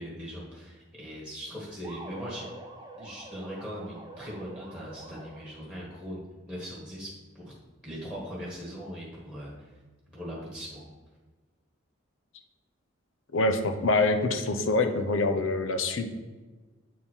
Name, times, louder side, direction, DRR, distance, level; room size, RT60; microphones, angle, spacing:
voice 1, 0.0-2.5 3.0-7.5 7.8-9.7 10.1-10.8, equal, 5° left, -7 dB, 1.5 m, -40 dB
sound 1, 1.8-5.7, right 2 dB, 20° right, 0.7 m, -46 dB
voice 2, 13.3-16.1, left 2 dB, 80° left, 7 dB, 0.7 m, -25 dB
8.4 x 3.7 x 4.5 m, 1.3 s
head